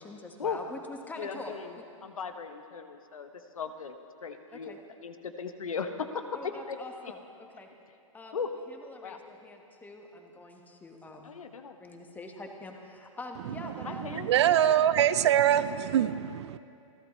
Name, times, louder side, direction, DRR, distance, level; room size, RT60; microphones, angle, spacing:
voice 1, 0.0-1.5 4.5-4.8 6.3-7.2 7.5-7.7 8.1-8.4 8.7-11.3 11.8-14.3, left 2 dB, 10° left, 3 dB, 1.4 m, -44 dB
voice 2, 1.2-3.3 3.5-3.9 4.2-6.8 8.3-8.5 9.0-9.2 11.2-11.8 13.8-14.3, left 6 dB, 75° left, 8 dB, 1.1 m, -37 dB
voice 3, 13.4-16.6, right 10 dB, 55° right, 15 dB, 0.5 m, -25 dB
29.0 x 11.5 x 3.2 m, 2.6 s
hypercardioid pair, 120°, 18 cm